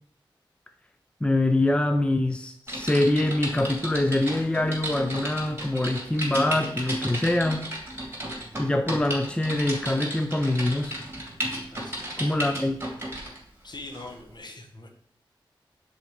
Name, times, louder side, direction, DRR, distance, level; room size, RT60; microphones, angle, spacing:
voice 1, 1.2-7.7 8.6-11.0 12.2-12.8, left 1 dB, 10° left, 7 dB, 0.5 m, -24 dB
Typing, 2.7-13.4 13.9-14.1, right 1 dB, 25° right, 2.6 m, -34 dB
voice 2, 11.7-12.4 13.6-14.9, left 2 dB, 55° left, 4 dB, 1.2 m, -43 dB
6.4 x 3.9 x 5.0 m, 0.64 s
cardioid pair, 50°, 9 cm